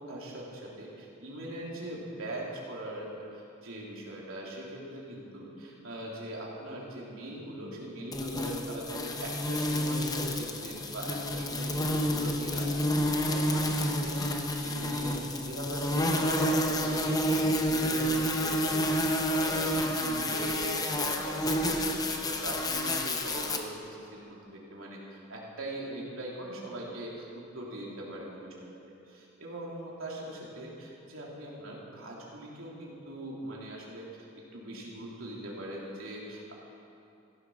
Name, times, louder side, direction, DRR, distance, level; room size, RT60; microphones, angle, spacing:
voice 1, 0.0-15.2 15.4-17.4 17.7-28.7 29.1-34.1 34.5-36.5, right 1 dB, 90° right, -4 dB, 3.2 m, -41 dB
sound 1, 8.1-23.6, equal, 20° left, 0.9 m, -29 dB
15.5 x 11.0 x 6.3 m, 2.8 s
head